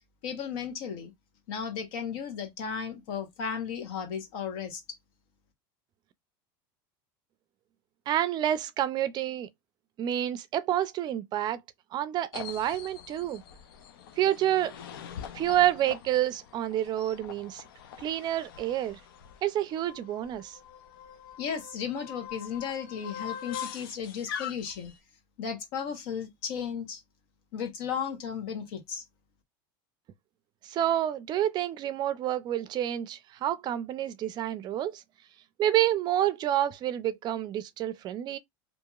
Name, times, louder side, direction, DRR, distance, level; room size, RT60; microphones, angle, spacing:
voice 1, 0.2-1.1 1.5-4.8 21.4-24.9 25.4-27.0 27.5-29.0, left 7 dB, 70° left, 1.1 m, -35 dB
voice 2, 8.1-9.5 10.0-11.6 11.9-13.4 14.2-14.8 15.3-17.6 18.0-19.0 19.4-20.6 30.6-35.0 35.6-38.4, right 12 dB, 40° right, 0.4 m, -28 dB
sound 1, 12.3-25.0, left 9 dB, 85° left, 0.5 m, -43 dB
2.9 x 2.6 x 2.3 m
supercardioid pair, 120°, 11 cm